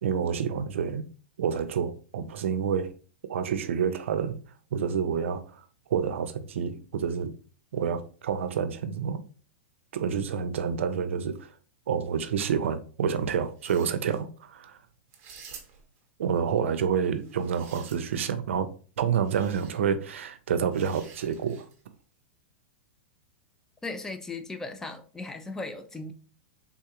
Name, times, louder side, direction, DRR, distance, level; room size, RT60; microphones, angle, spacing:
voice 1, 0.0-1.1 1.4-2.9 3.3-4.4 4.7-5.6 5.9-7.3 7.7-9.2 9.9-11.5 11.9-14.8 16.2-18.7 19.0-21.7, right 7 dB, 85° right, 0.4 m, -28 dB
sound 1, 13.5-14.2 15.1-16.0 17.1-18.3 19.2-19.8 20.7-21.8, right 6 dB, 35° right, 0.8 m, -50 dB
voice 2, 23.8-26.1, left 3 dB, 5° left, 0.3 m, -37 dB
3.5 x 2.4 x 2.8 m
supercardioid pair, 145°, 7 cm